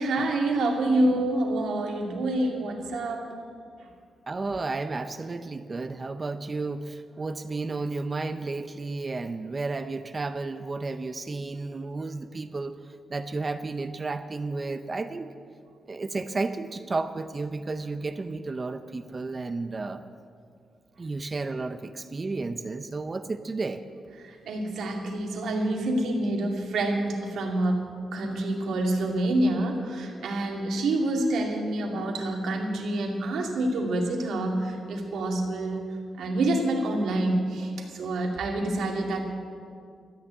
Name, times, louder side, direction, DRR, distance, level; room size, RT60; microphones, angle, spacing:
voice 1, 0.0-3.3 24.2-39.2, right 1 dB, 85° right, 0 dB, 2.3 m, -27 dB
voice 2, 4.3-12.8 13.1-15.3 15.9-20.0 21.0-23.8, right 3 dB, 25° right, 10 dB, 0.5 m, -32 dB
13.5 x 9.5 x 8.9 m, 2.3 s
wide cardioid pair, 150°, 0 cm